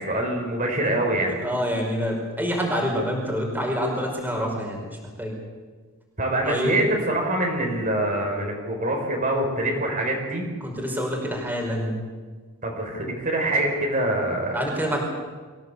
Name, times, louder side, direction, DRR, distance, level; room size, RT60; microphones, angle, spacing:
voice 1, 0.0-1.3 6.2-10.5 12.6-14.6, right 1 dB, 40° right, 0 dB, 4.5 m, -25 dB
voice 2, 0.9-4.8 5.2-5.3 6.4-6.8 10.6-12.0 14.5-15.0, equal, 10° right, 0 dB, 5.3 m, -27 dB
25.0 x 17.0 x 8.4 m, 1.4 s
head